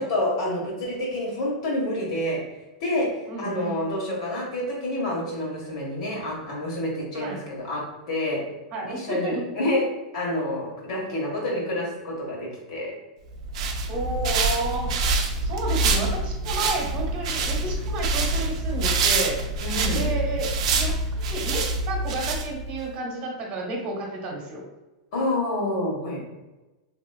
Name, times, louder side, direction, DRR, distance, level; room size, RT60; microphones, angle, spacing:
voice 1, 0.0-2.4 2.8-3.1 3.4-7.8 8.1-8.4 8.8-9.8 10.1-12.9 19.6-20.1 25.1-26.2, left 1 dB, 70° left, -3 dB, 1.4 m, -28 dB
voice 2, 3.3-3.8 7.1-7.4 8.7-9.5 13.9-14.9 15.4-19.4 19.9-24.6, right 2 dB, 40° right, 0 dB, 1.0 m, -31 dB
sound 1, 13.3-22.8, right 3 dB, 70° right, 0.4 m, -26 dB
3.3 x 2.9 x 2.3 m, 1.1 s
supercardioid pair, 135°, 3 cm